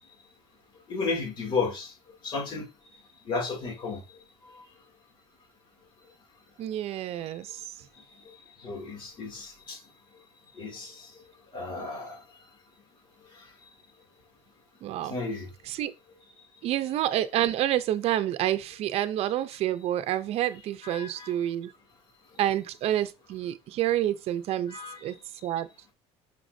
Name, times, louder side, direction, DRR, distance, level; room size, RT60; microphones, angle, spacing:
voice 1, 0.9-1.9 2.2-2.7 3.2-4.0 4.4-4.7 8.6-9.8 10.5-11.1 11.5-12.2 15.0-15.5 20.8-21.3 24.7-25.1, left 4 dB, 45° left, 2.9 m, -33 dB
voice 2, 6.6-7.6 14.8-15.1 15.7-15.9 16.6-21.7 22.4-25.1 25.4-25.7, right 12 dB, 65° right, 0.7 m, -28 dB
6.0 x 5.9 x 2.7 m
cardioid pair, 130°, 12 cm